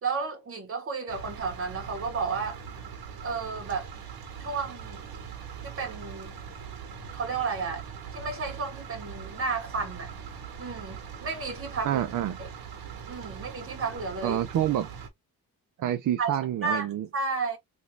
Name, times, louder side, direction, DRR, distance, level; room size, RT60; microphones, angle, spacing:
voice 1, 0.0-2.6 3.2-3.9 4.4-5.0 5.6-6.3 7.1-7.8 8.1-10.1 10.6-12.0 12.4-12.5 13.1-14.4 16.2-16.3 16.6-16.9 17.1-17.6, right 4 dB, 35° right, 1.1 m, -32 dB
sound 1, 1.1-15.1, right 7 dB, 70° right, 1.1 m, -41 dB
voice 2, 11.8-12.4 14.2-14.9 15.8-17.1, right 11 dB, 55° right, 0.5 m, -27 dB
3.0 x 2.6 x 3.1 m
wide cardioid pair, 155°, 38 cm